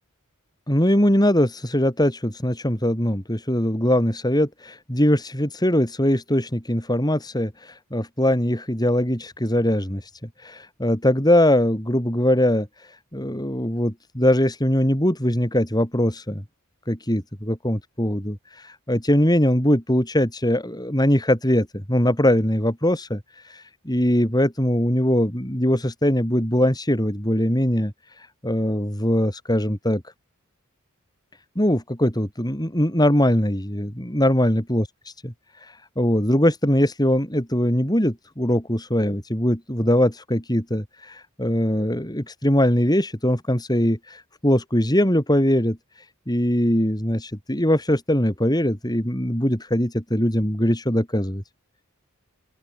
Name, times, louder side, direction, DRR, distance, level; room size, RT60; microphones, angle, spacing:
voice 1, 0.7-10.1 10.4-16.4 16.9-30.0 31.6-34.9 35.2-35.3 35.6-45.8 46.3-51.4, left 1 dB, 20° left, 6.3 m, -21 dB
open air
head